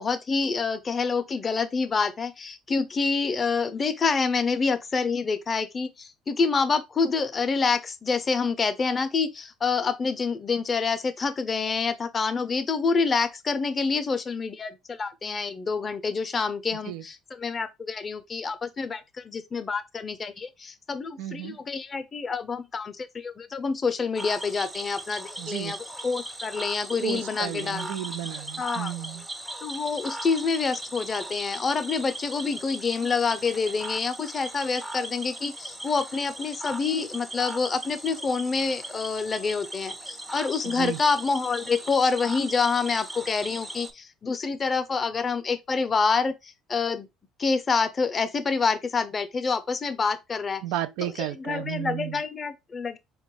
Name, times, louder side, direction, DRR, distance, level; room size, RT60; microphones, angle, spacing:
voice 1, 0.0-25.8 26.0-28.0 28.6-28.9 29.6-47.1 47.4-50.6 51.0-53.0, left 4 dB, 35° left, 0.5 m, -27 dB
voice 2, 21.2-21.6 25.4-25.7 27.0-29.2 40.6-41.0 50.6-52.2, right 12 dB, 75° right, 0.3 m, -33 dB
Cricket / Frog, 24.2-43.9, right 1 dB, 15° right, 0.5 m, -38 dB
4.1 x 2.3 x 3.0 m
hypercardioid pair, 70°, 0 cm